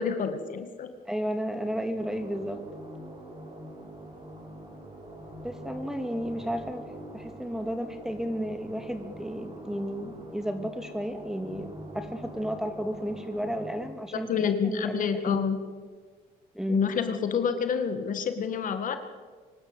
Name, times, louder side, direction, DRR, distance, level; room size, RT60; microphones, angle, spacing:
voice 1, 0.0-0.9 14.3-15.6 16.7-19.0, left 6 dB, 50° left, 8 dB, 2.0 m, -28 dB
voice 2, 1.1-2.6 5.4-6.9 7.1-15.4 16.5-16.9, equal, 5° right, 7 dB, 2.5 m, -33 dB
sound 1, 2.0-13.9, right 1 dB, 35° right, 6.0 m, -44 dB
25.0 x 12.5 x 8.4 m, 1.5 s
cardioid pair, 110°, 17 cm